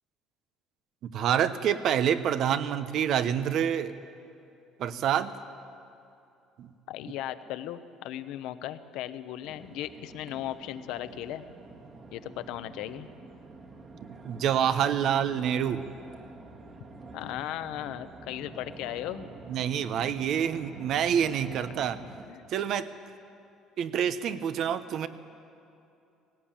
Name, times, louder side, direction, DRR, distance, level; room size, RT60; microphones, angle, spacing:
voice 1, 1.0-3.9 4.8-5.3 6.6-6.7 14.0-15.8 19.5-22.0 22.5-22.9 23.8-25.1, right 9 dB, 55° right, 12 dB, 0.9 m, -27 dB
voice 2, 6.9-11.4 12.1-13.1 17.1-19.3 22.3-22.4, left 12 dB, 80° left, 11 dB, 0.9 m, -37 dB
sound 1, 9.4-22.3, right 3 dB, 35° right, 2.0 m, -47 dB
18.0 x 17.5 x 8.9 m, 2.6 s
cardioid pair, 130°, 0 cm